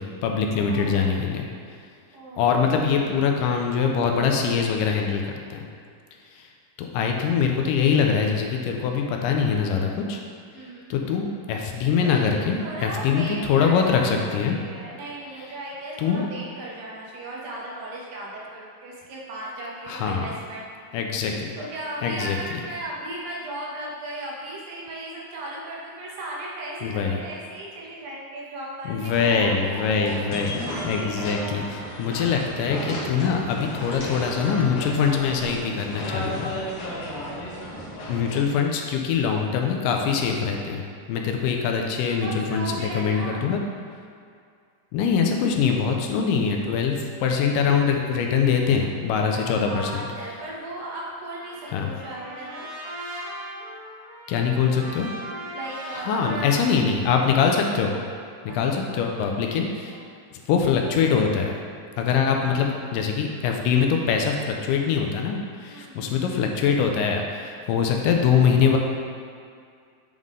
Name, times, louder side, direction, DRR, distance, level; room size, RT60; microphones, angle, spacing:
voice 1, 0.0-1.5 2.4-5.2 5.5-5.7 6.3-6.5 6.8-10.2 10.9-14.6 16.0-16.2 19.9-20.3 20.9-21.5 22.0-22.4 26.8-27.2 28.9-30.5 30.8-31.6 32.0-36.5 38.1-43.6 44.9-50.1 51.7-51.9 54.3-55.1 55.9-58.0 58.4-60.0 60.5-61.6 62.0-68.8, left 6 dB, 80° left, 2 dB, 2.1 m, -23 dB
voice 2, 0.5-1.5 2.1-2.7 10.5-11.0 12.0-12.2 12.6-20.7 21.6-29.1 29.4-29.5 30.6-31.7 32.0-32.4 37.2-37.9 42.1-43.5 49.3-52.7 55.5-56.5 58.5-58.9 59.8-60.0 62.6-62.9 65.7-66.2, right 1 dB, 90° right, -4 dB, 2.8 m, -36 dB
sound 1, 29.1-38.4, left 1 dB, 65° left, 1.6 m, -34 dB
Trumpet, 51.3-57.6, right 1 dB, 60° right, 1.6 m, -39 dB
7.6 x 3.7 x 3.7 m, 2.2 s
omnidirectional pair, 3.9 m